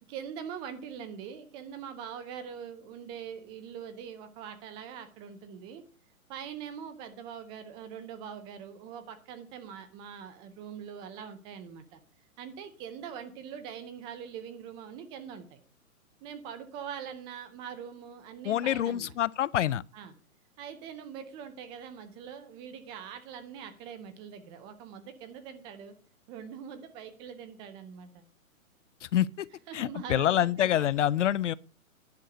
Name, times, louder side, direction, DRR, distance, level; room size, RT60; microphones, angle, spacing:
voice 1, 0.1-5.8 6.3-12.0 12.4-15.6 16.2-19.1 19.9-20.1 20.6-25.9 26.3-28.2 29.7-30.9, right 8 dB, 10° right, 0.5 m, -43 dB
voice 2, 18.4-19.8 29.0-29.5 29.7-31.5, left 11 dB, 60° left, 0.5 m, -26 dB
10.5 x 6.4 x 6.4 m
figure-of-eight pair, 125°, 42 cm